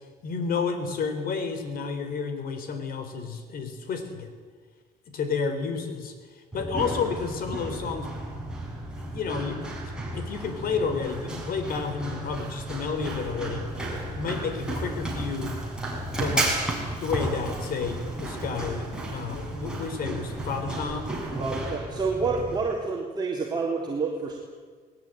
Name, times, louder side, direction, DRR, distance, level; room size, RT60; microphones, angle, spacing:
voice 1, 0.2-4.3 5.1-6.1 6.5-8.2 9.0-9.7 10.1-13.7 14.1-15.6 16.1-16.6 16.9-21.2, left 5 dB, 60° left, 8 dB, 4.1 m, -31 dB
Run, 6.5-22.6, right 1 dB, 5° right, 6.5 m, -33 dB
voice 2, 21.4-24.4, right 4 dB, 25° right, -2 dB, 3.7 m, -28 dB
20.5 x 18.5 x 9.3 m, 1.6 s
cardioid pair, 110°, 17 cm